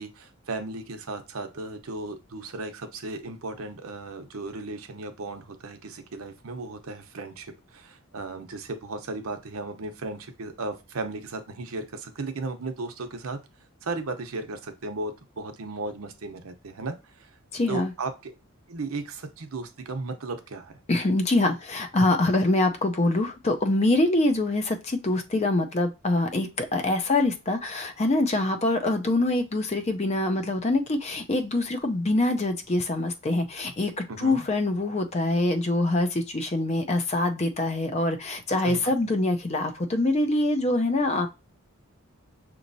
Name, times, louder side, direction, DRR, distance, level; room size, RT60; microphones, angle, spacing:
voice 1, 0.0-13.4 13.8-17.3 17.7-18.3 18.7-20.7 34.1-34.5 38.6-38.9, right 3 dB, 80° right, 7 dB, 0.7 m, -35 dB
voice 2, 17.5-17.9 20.9-41.3, left 2 dB, 30° left, 6 dB, 0.5 m, -24 dB
6.1 x 3.0 x 2.6 m, 0.27 s
head